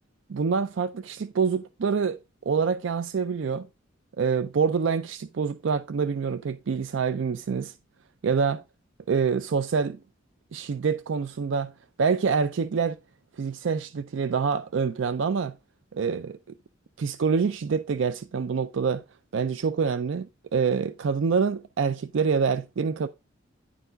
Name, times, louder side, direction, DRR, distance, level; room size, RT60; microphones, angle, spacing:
voice 1, 0.3-2.2 2.5-3.7 4.2-7.7 8.2-8.6 9.1-10.0 10.5-11.7 12.0-13.0 13.4-15.5 15.9-16.4 17.0-19.0 19.3-23.1, right 5 dB, 65° right, 0.4 m, -26 dB
10.0 x 4.5 x 3.9 m
head